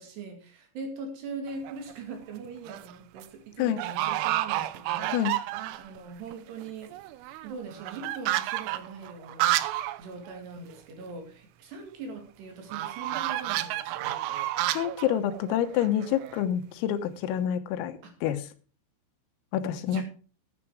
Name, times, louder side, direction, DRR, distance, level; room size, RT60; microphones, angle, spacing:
voice 1, 0.0-5.2 5.8-7.2 7.4-14.4 18.0-18.2 19.8-20.0, right 4 dB, 60° right, 4 dB, 4.0 m, -41 dB
sound 1, 1.5-1.9 2.5-2.9 3.2-3.3 3.8-6.0 6.3-6.4 6.6-10.0 10.3-10.4 10.7-10.8 12.7-16.4, right 15 dB, 85° right, 3.3 m, -30 dB
voice 2, 14.8-18.5 19.5-20.0, left 10 dB, 85° left, 10 dB, 3.9 m, -28 dB
11.0 x 11.0 x 4.7 m, 0.39 s
omnidirectional pair, 5.9 m